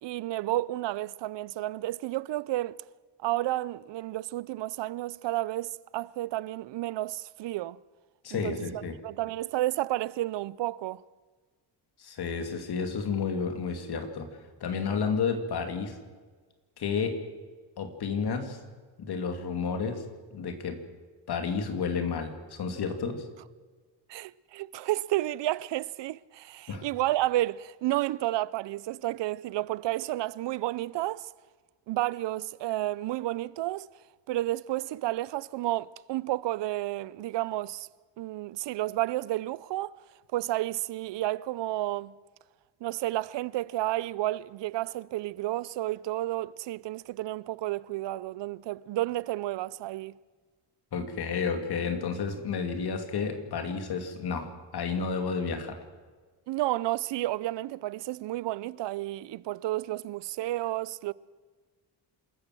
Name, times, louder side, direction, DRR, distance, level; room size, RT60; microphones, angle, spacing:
voice 1, 0.0-2.8 3.2-7.8 8.3-11.0 24.1-31.3 31.9-33.9 34.3-37.9 38.2-39.9 40.3-42.1 42.8-50.1 56.5-61.1, right 16 dB, 70° right, 0.6 m, -31 dB
voice 2, 8.2-9.0 12.0-14.3 14.6-15.9 16.8-17.2 17.8-18.6 19.0-20.0 20.3-20.8 21.3-23.2 26.7-26.9 50.9-55.8, left 5 dB, 55° left, 2.7 m, -31 dB
27.0 x 14.0 x 7.6 m
cardioid pair, 135°, 45 cm